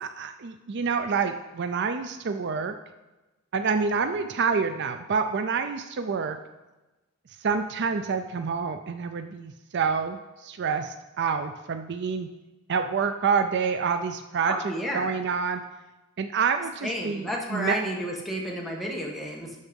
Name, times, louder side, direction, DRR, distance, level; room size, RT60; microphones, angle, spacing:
voice 1, 0.0-2.7 3.5-6.4 7.4-12.3 12.7-14.6 14.9-15.6 16.2-17.8, right 5 dB, 55° right, 8 dB, 0.5 m, -27 dB
voice 2, 14.4-15.2 16.8-19.5, equal, ahead, -2 dB, 1.6 m, -31 dB
12.0 x 4.7 x 5.3 m, 1.1 s
head